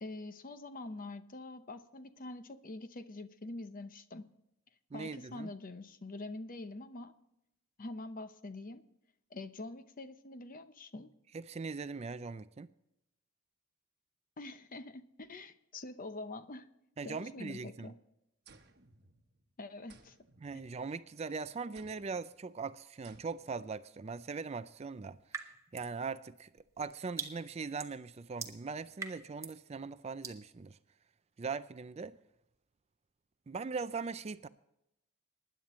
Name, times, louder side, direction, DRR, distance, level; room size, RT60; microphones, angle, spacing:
voice 1, 0.0-4.3 4.9-7.1 7.8-8.8 9.3-11.1 14.4-16.7 17.0-18.0 19.6-20.2, left 2 dB, 40° left, 0.8 m, -45 dB
voice 2, 4.9-5.5 11.3-12.7 17.0-17.9 20.4-30.8 31.4-32.2 33.5-34.5, right 4 dB, 30° right, 0.4 m, -40 dB
sound 1, 18.5-19.5 19.9-21.2 21.7-22.3 23.0-23.7, right 4 dB, 50° right, 1.1 m, -62 dB
sound 2, 25.3-26.0 26.4-29.6 30.2-30.4, right 4 dB, 15° right, 1.0 m, -44 dB
20.0 x 10.5 x 3.1 m
head